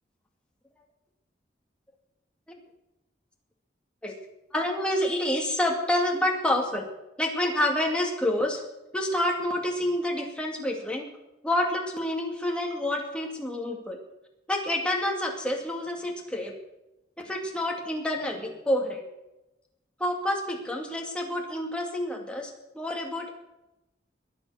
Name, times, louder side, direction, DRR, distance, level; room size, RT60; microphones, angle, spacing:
voice 1, 4.5-6.9 7.2-8.6 8.9-11.1 11.4-14.0 14.5-16.5 17.2-19.0 20.0-23.3, left 1 dB, 5° left, 0 dB, 2.4 m, -28 dB
22.0 x 8.0 x 6.4 m, 0.95 s
head